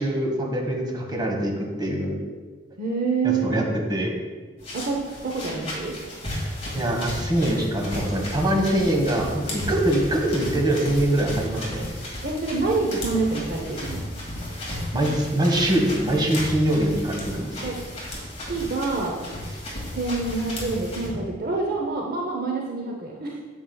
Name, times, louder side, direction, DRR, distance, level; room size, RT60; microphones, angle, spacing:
voice 1, 0.0-2.2 3.2-3.6 3.9-4.1 6.7-11.9 14.9-17.6, right 1 dB, 25° right, -1 dB, 1.3 m, -23 dB
voice 2, 2.8-3.6 4.7-6.0 12.2-14.0 17.6-17.8 18.4-19.2 19.9-23.4, right 3 dB, 55° right, 0 dB, 0.7 m, -27 dB
sound 1, 4.6-21.1, left 1 dB, 35° left, 2.1 m, -34 dB
9.3 x 7.2 x 2.3 m, 1.4 s
head